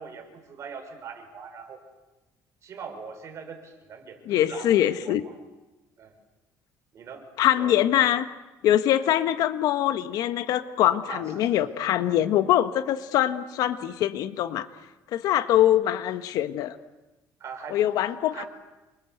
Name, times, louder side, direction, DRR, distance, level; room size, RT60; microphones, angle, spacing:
voice 1, 0.0-1.8 2.6-4.7 5.0-5.3 6.0-6.1 6.9-7.3 7.6-7.9 11.1-11.7 17.4-17.9 18.3-18.5, right 6 dB, 45° right, 5 dB, 6.4 m, -41 dB
voice 2, 4.3-5.2 7.4-8.2 8.6-14.7 15.1-16.8 17.7-18.4, left 12 dB, 70° left, 11 dB, 1.5 m, -23 dB
29.0 x 24.5 x 8.1 m, 1.1 s
cardioid pair, 115°, 7 cm